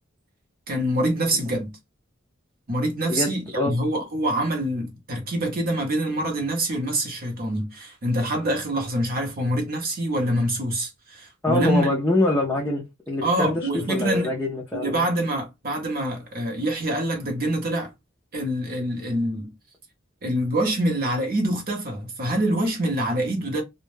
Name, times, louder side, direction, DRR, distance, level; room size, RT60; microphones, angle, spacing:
voice 1, 0.7-1.8 2.7-11.9 13.2-14.3 14.7-17.9 18.3-19.5 20.2-23.6, right 1 dB, 45° right, 0.8 m, -25 dB
voice 2, 3.1-3.7 11.4-15.1, left 2 dB, 10° left, 0.4 m, -24 dB
2.2 x 2.1 x 3.1 m
head